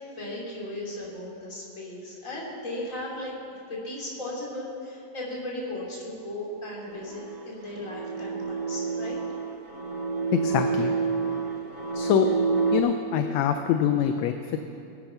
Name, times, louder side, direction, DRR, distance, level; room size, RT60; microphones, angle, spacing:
voice 1, 0.2-3.3 3.7-9.2, left 1 dB, 25° left, -4 dB, 3.2 m, -36 dB
sound 1, 6.8-12.8, right 5 dB, 45° right, 1.0 m, -29 dB
voice 2, 10.3-10.9 11.9-12.3 12.7-14.6, left 9 dB, 75° left, 7 dB, 1.7 m, -24 dB
20.5 x 8.7 x 5.8 m, 2.8 s
omnidirectional pair, 3.3 m